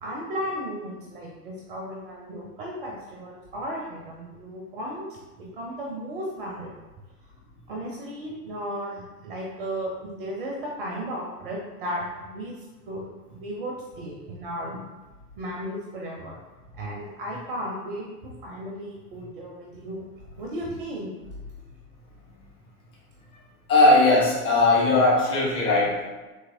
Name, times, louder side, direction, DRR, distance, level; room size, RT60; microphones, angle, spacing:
voice 1, 0.0-5.1 5.4-6.7 7.7-12.6 12.9-14.8 15.4-16.4 16.8-20.0 20.4-21.1, equal, 35° right, -1 dB, 0.5 m, -35 dB
voice 2, 23.7-26.0, left 2 dB, 10° left, -5 dB, 0.5 m, -19 dB
3.4 x 2.8 x 2.5 m, 1.2 s
figure-of-eight pair, 95°, 47 cm